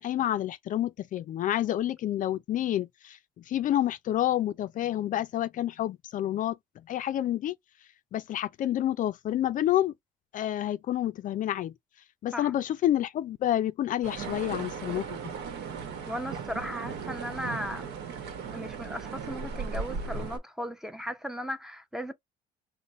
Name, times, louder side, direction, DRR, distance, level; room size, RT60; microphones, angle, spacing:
voice 1, 0.0-3.2 3.5-6.6 6.9-7.5 8.1-9.9 10.3-11.7 12.2-15.2, left 12 dB, 50° left, 0.4 m, -28 dB
sound 1, 14.0-20.4, right 5 dB, 75° right, 1.0 m, -37 dB
voice 2, 16.1-17.9 18.5-22.1, equal, 5° right, 0.6 m, -36 dB
3.9 x 2.1 x 3.0 m
cardioid pair, 110°, 17 cm